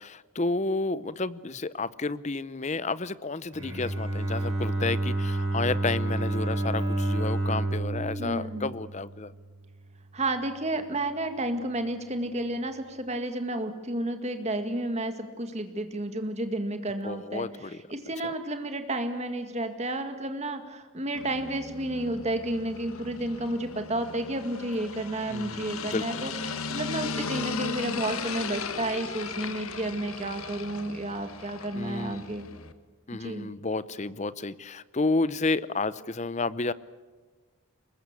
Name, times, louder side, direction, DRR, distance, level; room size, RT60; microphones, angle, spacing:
voice 1, 0.0-9.3 17.0-17.8 18.2-18.3 25.3-26.2 31.7-32.3 33.1-36.7, left 3 dB, 30° left, 17 dB, 0.7 m, -31 dB
Bowed string instrument, 3.5-9.5, right 2 dB, 60° right, 7.5 m, -29 dB
voice 2, 8.2-8.7 10.1-17.5 17.9-32.5 33.2-33.5, right 1 dB, 30° right, 7 dB, 2.1 m, -31 dB
sound 1, 21.1-32.7, left 4 dB, 75° left, 1.5 m, -37 dB
24.0 x 21.0 x 8.4 m, 1.3 s
head